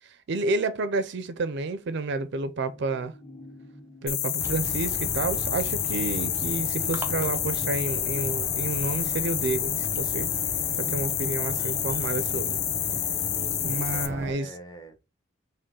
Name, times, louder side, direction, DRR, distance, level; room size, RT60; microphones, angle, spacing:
voice 1, 0.3-3.1 4.0-10.3 10.8-12.6 13.6-14.5, right 3 dB, 55° right, 0.4 m, -30 dB
sound 1, 2.7-12.5 12.8-12.9, left 1 dB, 45° left, 1.8 m, -53 dB
sound 2, 4.1-14.1, left 11 dB, 70° left, 0.5 m, -29 dB
sound 3, 4.4-14.3, right 1 dB, 15° right, 0.7 m, -37 dB
voice 2, 13.3-15.0, right 1 dB, 20° left, 0.8 m, -44 dB
5.2 x 2.1 x 3.7 m
head